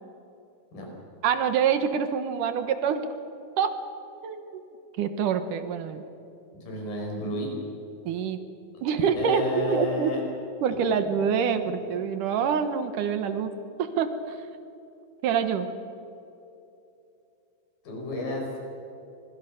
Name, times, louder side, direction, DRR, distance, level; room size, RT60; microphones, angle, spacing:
voice 1, 1.2-3.1 3.6-3.7 4.2-4.6 5.0-6.0 8.1-8.4 8.8-10.1 10.6-13.5 13.8-14.4 15.2-15.7, right 7 dB, 65° right, 9 dB, 2.6 m, -26 dB
voice 2, 6.7-7.5 9.0-10.2 17.8-18.6, left 2 dB, 70° left, 0 dB, 7.1 m, -31 dB
25.5 x 21.5 x 6.6 m, 2.8 s
omnidirectional pair, 4.3 m